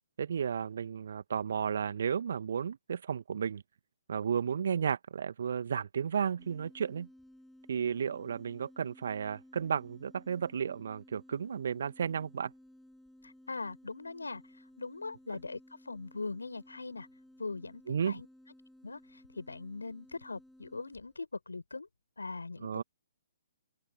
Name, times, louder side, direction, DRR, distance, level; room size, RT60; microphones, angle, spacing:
voice 1, 0.2-3.6 4.1-7.1 7.7-12.5 17.9-18.2 22.6-22.8, right 7 dB, 55° right, 1.6 m, -33 dB
sound 1, 6.4-21.2, left 1 dB, ahead, 6.6 m, -58 dB
voice 2, 13.2-14.4 14.8-17.1 17.4-18.3 18.8-21.9 22.2-22.7, left 3 dB, 70° left, 5.1 m, -41 dB
open air
figure-of-eight pair, 125°, 0 cm